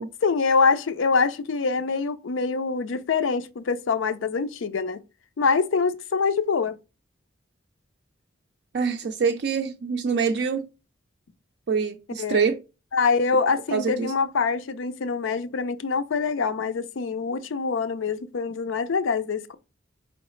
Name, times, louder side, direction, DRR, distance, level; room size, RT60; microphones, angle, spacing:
voice 1, 0.2-5.0 5.4-6.8 12.2-12.4 12.9-19.5, left 4 dB, 90° left, 0.5 m, -24 dB
voice 2, 8.7-10.7 11.7-12.6 13.7-14.1, right 5 dB, 60° right, 0.3 m, -25 dB
4.7 x 3.1 x 3.0 m
head